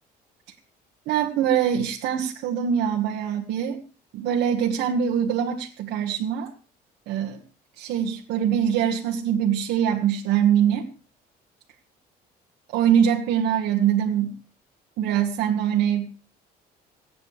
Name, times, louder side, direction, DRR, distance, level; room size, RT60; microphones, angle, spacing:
voice 1, 1.1-3.8 4.1-6.5 7.1-7.4 7.8-10.9 12.7-14.3 15.0-16.2, right 9 dB, 85° right, 0 dB, 1.7 m, -23 dB
27.0 x 9.2 x 3.4 m, 0.37 s
cardioid pair, 110°, 17 cm